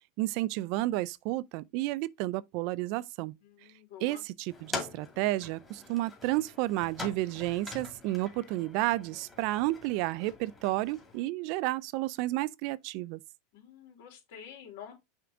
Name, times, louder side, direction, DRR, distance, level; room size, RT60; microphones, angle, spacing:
voice 1, 0.2-3.3 4.0-13.2, right 17 dB, 55° right, 0.4 m, -31 dB
voice 2, 3.4-4.2 13.5-14.9, left 8 dB, 70° left, 3.3 m, -48 dB
sound 1, 4.5-11.2, left 3 dB, 15° left, 2.1 m, -44 dB
5.9 x 3.6 x 4.9 m
supercardioid pair, 135°, 0 cm